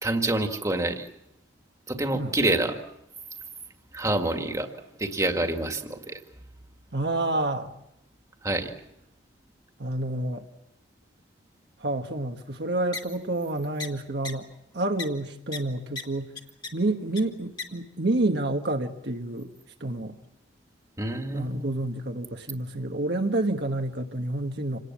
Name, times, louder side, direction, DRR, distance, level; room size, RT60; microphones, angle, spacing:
voice 1, 0.0-1.1 1.9-2.8 3.9-4.7 5.0-6.2 8.4-8.7 21.0-21.6, right 2 dB, 15° right, 4 dB, 1.9 m, -27 dB
voice 2, 6.9-7.7 9.8-10.5 11.8-14.5 14.7-16.3 16.7-19.5 19.8-20.1 21.3-24.8, right 2 dB, 60° right, 4 dB, 1.3 m, -28 dB
sound 1, 12.9-13.0 13.8-13.9 14.2-14.3 15.0-15.1 15.5-15.6 15.9-16.0 16.3-16.7 17.1-17.2 17.6-17.7, left 4 dB, 20° left, 2.1 m, -33 dB
27.5 x 19.0 x 7.4 m, 0.85 s
head